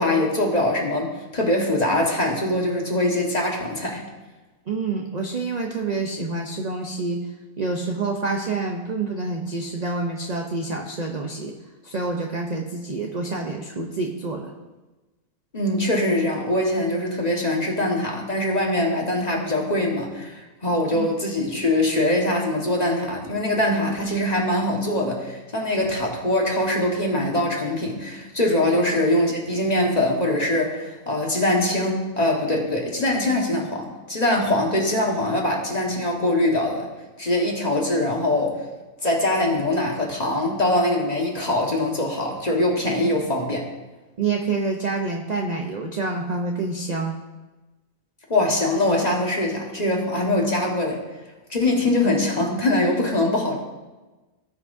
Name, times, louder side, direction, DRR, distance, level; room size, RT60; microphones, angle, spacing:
voice 1, 0.0-4.0 15.5-36.9 37.2-38.6 39.0-43.6 48.3-51.0 51.5-53.5, left 1 dB, 30° left, -1 dB, 1.5 m, -23 dB
voice 2, 4.7-7.2 7.6-11.5 11.8-14.5 20.9-21.1 28.7-28.8 44.2-47.1, right 3 dB, 40° right, 1 dB, 0.6 m, -27 dB
17.5 x 5.9 x 2.6 m, 1.2 s
omnidirectional pair, 1.5 m